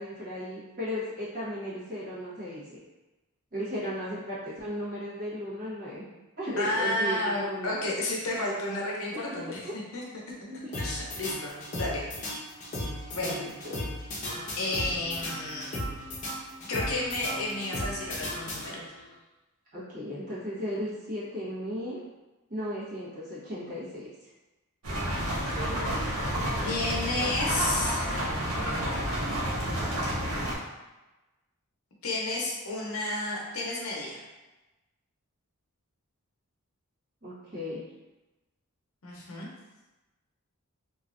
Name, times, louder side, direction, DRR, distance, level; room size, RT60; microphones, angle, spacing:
voice 1, 0.0-2.8 3.5-6.0 6.4-7.9 9.1-9.8 10.3-10.7 13.1-13.8 19.7-22.0 22.5-24.1 37.2-37.8, equal, 40° right, -10 dB, 1.3 m, -36 dB
voice 2, 6.6-9.6 9.9-10.0 10.8-12.0 13.1-13.5 14.6-15.8 16.7-18.8 26.6-28.3 32.0-34.2 39.0-39.5, left 2 dB, 75° left, -3 dB, 0.7 m, -31 dB
sound 1, 10.7-19.1, left 1 dB, 35° left, 0.7 m, -36 dB
sound 2, 24.8-30.5, equal, 80° right, 0.9 m, -30 dB
3.0 x 2.4 x 2.5 m, 1.1 s
head